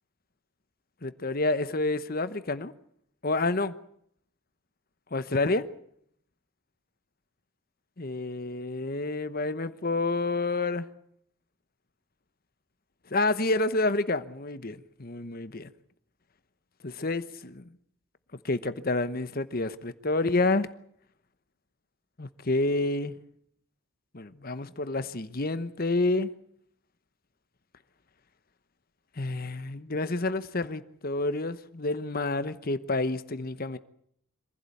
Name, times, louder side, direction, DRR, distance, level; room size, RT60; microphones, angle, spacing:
voice 1, 1.0-2.7 3.2-3.7 5.1-5.6 8.0-10.9 13.1-15.7 16.8-17.6 18.4-20.7 22.2-23.1 24.1-26.3 29.2-33.8, left 2 dB, 45° left, 1.0 m, -29 dB
26.0 x 16.0 x 8.5 m
head